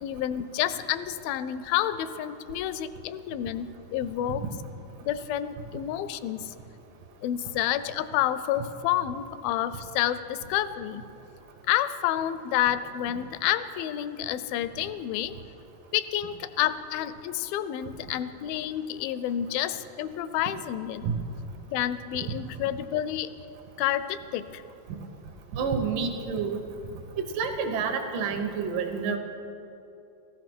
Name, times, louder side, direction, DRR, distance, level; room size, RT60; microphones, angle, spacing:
voice 1, 0.0-4.4 5.1-6.5 7.2-11.0 11.7-15.3 15.9-21.1 21.7-23.3 23.8-24.6, left 12 dB, 80° left, 13 dB, 2.2 m, -29 dB
voice 2, 25.5-26.6 27.2-29.2, right 5 dB, 70° right, 5 dB, 2.5 m, -28 dB
15.0 x 14.5 x 6.1 m, 2.8 s
omnidirectional pair, 4.4 m